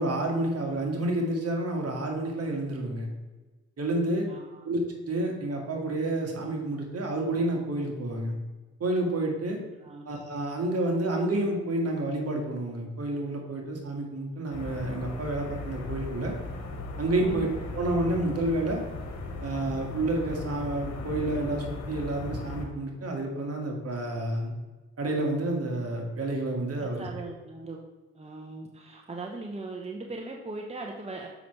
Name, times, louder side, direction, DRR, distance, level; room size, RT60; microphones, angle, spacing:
voice 1, 0.0-3.1 3.8-4.3 4.6-8.3 8.8-9.6 10.1-16.3 17.0-18.8 19.4-24.5 25.0-27.3, right 1 dB, 55° right, 1 dB, 1.9 m, -29 dB
voice 2, 4.3-4.7 9.8-10.1 17.2-17.5 26.8-27.8 28.1-31.3, right 3 dB, 20° right, 1 dB, 0.9 m, -39 dB
sound 1, 14.5-22.7, left 2 dB, 75° left, 1.4 m, -37 dB
7.0 x 5.9 x 3.2 m, 1.3 s
supercardioid pair, 60°, 29 cm